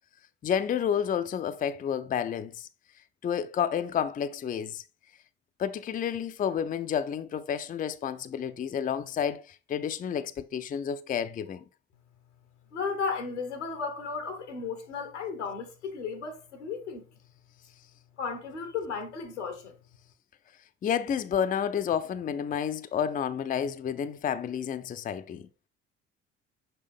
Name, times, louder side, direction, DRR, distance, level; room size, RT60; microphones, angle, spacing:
voice 1, 0.4-2.7 3.2-4.8 5.6-11.6 20.8-25.5, left 8 dB, 25° left, 0.5 m, -30 dB
voice 2, 12.7-17.1 18.2-19.7, left 5 dB, 85° left, 1.2 m, -34 dB
6.6 x 4.9 x 3.5 m
figure-of-eight pair, 50°, 35 cm